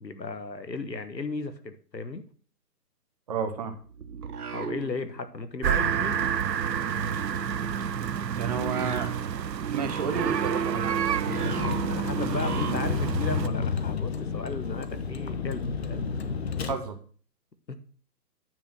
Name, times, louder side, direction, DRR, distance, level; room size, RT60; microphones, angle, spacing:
voice 1, 0.0-2.2 4.5-6.3 11.4-16.0 17.7-17.8, left 3 dB, 85° left, 10 dB, 1.4 m, -35 dB
voice 2, 3.3-3.7 8.4-9.1 9.7-11.0 16.7-16.9, right 5 dB, 25° right, 6 dB, 0.9 m, -31 dB
sound 1, 3.6-5.4 5.7-13.2, right 7 dB, 65° right, 1.1 m, -37 dB
sound 2, 5.6-13.5, right 8 dB, 80° right, 0.7 m, -29 dB
Vehicle, 11.3-16.7, left 5 dB, 40° left, 0.9 m, -31 dB
9.4 x 5.2 x 6.1 m, 0.43 s
figure-of-eight pair, 140°, 49 cm